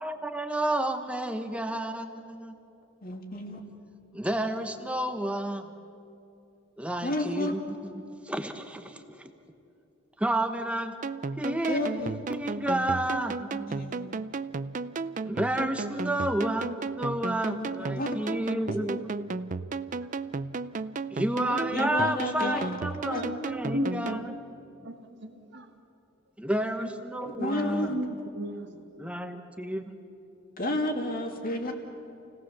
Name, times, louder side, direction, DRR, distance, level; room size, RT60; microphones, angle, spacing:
voice 1, 0.0-2.6 4.1-5.7 6.8-9.3 10.2-11.0 11.4-13.8 15.2-19.3 21.1-24.4 26.4-27.9 29.0-30.0, right 1 dB, 5° right, 7 dB, 1.1 m, -31 dB
voice 2, 3.0-3.6 7.0-7.5 11.7-12.2 13.8-14.1 17.5-18.1 18.7-18.8 21.7-22.7 23.1-23.3 24.1-24.2 27.3-28.0 30.6-31.7, left 1 dB, 45° left, 3 dB, 2.2 m, -31 dB
sound 1, 11.0-24.3, right 4 dB, 40° right, 0.5 m, -34 dB
voice 3, 24.8-25.7 26.8-26.9 27.4-27.5 27.8-29.1 29.8-29.9 30.5-30.6, equal, 55° right, 5 dB, 1.6 m, -36 dB
28.5 x 17.5 x 6.9 m, 2.8 s
head